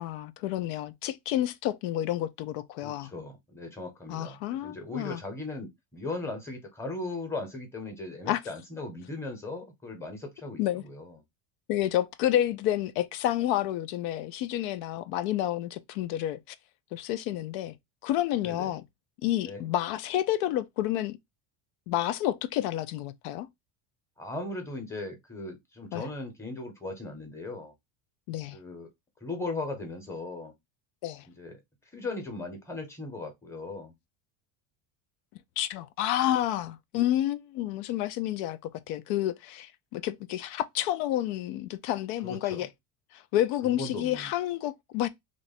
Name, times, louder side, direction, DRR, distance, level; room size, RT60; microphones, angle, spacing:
voice 1, 0.0-3.1 4.1-5.2 8.3-8.4 10.6-10.8 11.7-16.4 16.9-17.7 18.0-18.8 19.2-21.2 21.9-23.5 25.9-26.1 28.3-28.6 31.0-31.2 35.6-38.6 38.9-42.7 43.3-45.1, left 13 dB, 85° left, 0.6 m, -29 dB
voice 2, 2.8-11.2 18.4-18.8 19.4-19.7 24.2-27.7 28.5-28.9 29.2-30.5 31.3-31.6 31.9-33.9 42.2-42.7 43.6-44.3, left 2 dB, 5° left, 0.8 m, -38 dB
3.1 x 2.4 x 4.1 m
cardioid pair, 150°, 50 cm